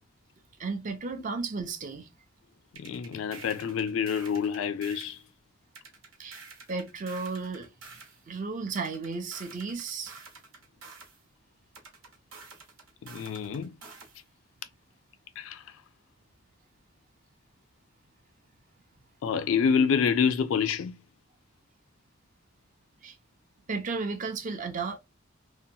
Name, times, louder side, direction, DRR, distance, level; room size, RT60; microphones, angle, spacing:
voice 1, 0.6-2.1 6.2-6.4 6.7-7.7 8.3-10.3 23.0-23.2 23.7-25.0, right 4 dB, 40° right, 0.5 m, -34 dB
voice 2, 2.8-5.2 13.0-13.8 15.4-15.8 19.2-21.0, left 6 dB, 70° left, 0.3 m, -27 dB
sound 1, 2.8-5.2 5.8-8.2 8.8-11.2 11.7-14.2, right 4 dB, 90° right, 1.1 m, -48 dB
2.8 x 2.1 x 2.6 m
head